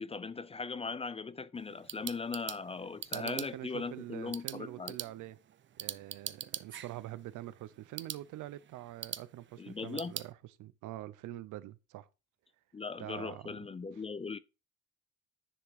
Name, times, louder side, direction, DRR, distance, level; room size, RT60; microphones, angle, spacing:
voice 1, 0.0-5.0 9.6-10.1 12.7-14.4, left 4 dB, 20° left, 0.4 m, -39 dB
sound 1, 1.5-10.3, right 10 dB, 40° right, 0.5 m, -44 dB
voice 2, 3.1-5.4 5.8-10.3 10.6-12.1 13.0-13.6, right 15 dB, 85° right, 0.6 m, -45 dB
10.0 x 3.6 x 4.8 m
cardioid pair, 90°, 30 cm